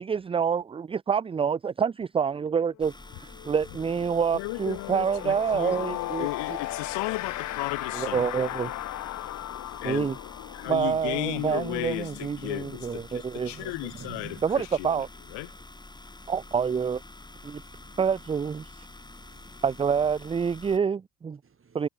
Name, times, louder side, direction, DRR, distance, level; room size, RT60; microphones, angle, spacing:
voice 1, 0.0-2.9 3.2-6.6 7.9-8.7 9.8-10.2 10.7-13.7 14.4-15.1 16.3-17.0 17.4-17.6 18.0-18.9 19.6-21.4 21.7-21.9, right 6 dB, 15° right, 0.3 m, -27 dB
sound 1, 2.6-2.8 3.1-13.6, left 15 dB, 45° left, 0.5 m, -37 dB
sound 2, 2.8-20.8, left 2 dB, 10° left, 2.0 m, -47 dB
voice 2, 4.3-8.3 9.8-10.2 10.5-15.0 15.3-15.5, left 26 dB, 75° left, 1.2 m, -35 dB
voice 3, 13.5-14.4 17.6-18.0 19.2-19.6 21.4-21.8, right 6 dB, 30° right, 2.3 m, -48 dB
supercardioid pair, 70°, 42 cm